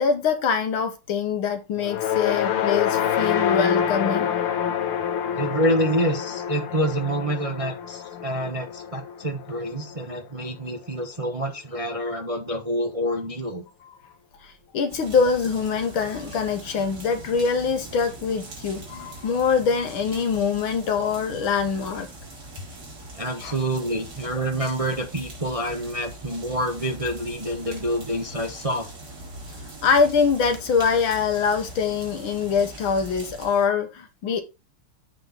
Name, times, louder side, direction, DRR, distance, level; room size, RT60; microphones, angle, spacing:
voice 1, 0.0-4.4 14.7-22.1 23.4-23.5 29.8-34.4, left 5 dB, 70° left, 2.1 m, -24 dB
sound 1, 1.8-10.2, left 8 dB, 90° left, 1.8 m, -26 dB
voice 2, 5.4-13.6 23.1-28.9, equal, 25° right, 0.8 m, -27 dB
sound 2, 14.9-33.7, right 1 dB, 45° right, 3.3 m, -41 dB
8.8 x 3.8 x 5.3 m
omnidirectional pair, 2.3 m